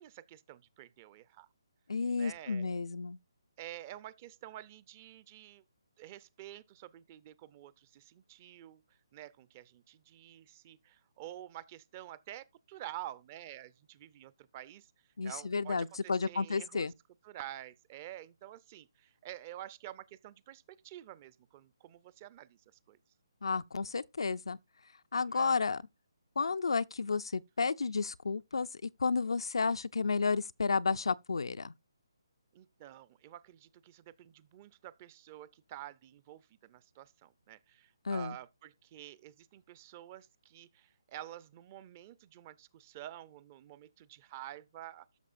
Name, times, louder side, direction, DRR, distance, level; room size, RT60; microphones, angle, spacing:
voice 1, 0.0-1.5 2.1-2.7 3.6-5.6 6.0-8.8 9.1-14.9 15.2-16.9 17.2-22.6 22.9-23.0 25.2-25.6 32.5-45.1, right 13 dB, 25° right, 0.5 m, -49 dB
voice 2, 1.9-3.2 15.2-16.9 23.4-24.6 25.1-25.8 26.4-31.7 38.1-38.4, left 4 dB, 75° left, 0.5 m, -32 dB
13.0 x 6.1 x 2.5 m
hypercardioid pair, 155°, 3 cm